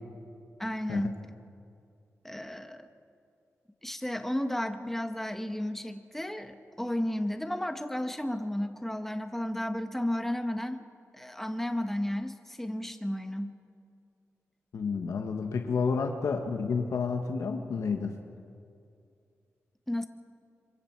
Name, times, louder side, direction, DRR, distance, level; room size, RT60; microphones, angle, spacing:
voice 1, 0.6-1.2 2.2-2.9 3.8-10.8 11.1-13.6 19.9-20.1, left 1 dB, 5° left, 7 dB, 1.5 m, -33 dB
voice 2, 14.7-18.2, left 5 dB, 80° left, 4 dB, 1.3 m, -30 dB
26.5 x 23.0 x 4.7 m, 2.4 s
cardioid pair, 70°, 5 cm